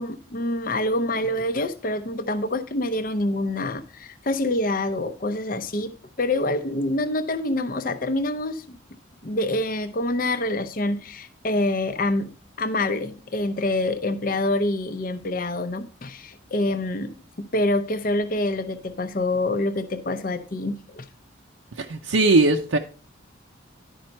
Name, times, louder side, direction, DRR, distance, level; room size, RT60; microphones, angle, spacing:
voice 1, 0.0-8.8 9.2-12.3 12.6-21.0, left 1 dB, 45° left, 10 dB, 0.6 m, -26 dB
voice 2, 21.8-22.8, right 2 dB, 80° right, 3 dB, 0.6 m, -19 dB
11.0 x 5.3 x 4.4 m, 0.38 s
head